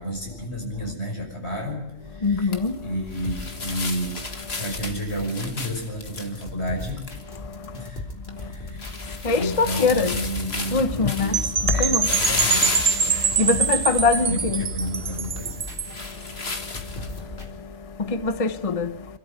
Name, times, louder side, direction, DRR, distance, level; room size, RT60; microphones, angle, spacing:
voice 1, 0.0-4.2 4.6-7.0 7.7-8.1 8.4-12.9 14.2-15.6, equal, 85° left, 6.3 m, -31 dB
sound 1, 2.2-17.4, left 3 dB, 70° left, 2.1 m, -33 dB
voice 2, 2.2-2.8 9.2-10.2 10.7-11.4 11.7-12.1 13.1-14.7 18.1-18.9, left 4 dB, 35° left, 0.9 m, -22 dB
sound 2, 3.2-17.5, left 2 dB, 55° left, 3.8 m, -40 dB
Percussion / Wind chime, 11.3-16.0, right 6 dB, 70° right, 1.4 m, -24 dB
27.0 x 13.0 x 8.3 m
omnidirectional pair, 1.1 m